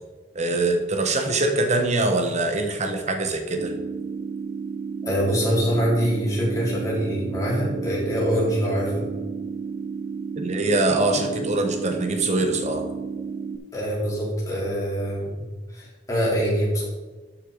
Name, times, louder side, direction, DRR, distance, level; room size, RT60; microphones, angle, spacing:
voice 1, 0.3-3.7 10.4-12.9, right 2 dB, 40° right, 5 dB, 1.2 m, -23 dB
sound 1, 3.6-13.6, right 5 dB, 85° right, 0.7 m, -32 dB
voice 2, 5.0-9.0 13.7-15.4 15.7-16.8, equal, 20° left, -6 dB, 3.5 m, -24 dB
12.5 x 6.4 x 3.9 m, 1.3 s
head